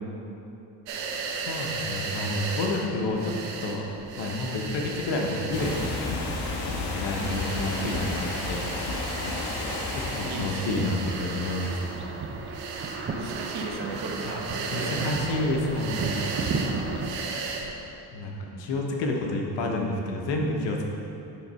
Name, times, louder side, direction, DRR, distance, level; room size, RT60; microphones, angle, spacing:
sound 1, 0.9-17.7, right 4 dB, 85° right, 1.0 m, -36 dB
voice 1, 1.4-3.3 3.6-3.9 4.2-6.0 6.7-8.6 9.0-9.2 9.9-12.0 14.2-14.4 14.7-16.7 18.1-20.8, left 2 dB, 75° left, 0 dB, 1.2 m, -29 dB
sound 2, 5.5-11.1, left 2 dB, 55° left, 1.4 m, -32 dB
voice 2, 10.3-10.7 12.5-12.6 13.0-15.0 18.2-18.6, right 3 dB, 65° right, 1 dB, 1.2 m, -36 dB
sound 3, 10.7-17.1, right 4 dB, 30° right, 0.7 m, -34 dB
9.2 x 3.9 x 5.5 m, 2.8 s
cardioid pair, 115°, 43 cm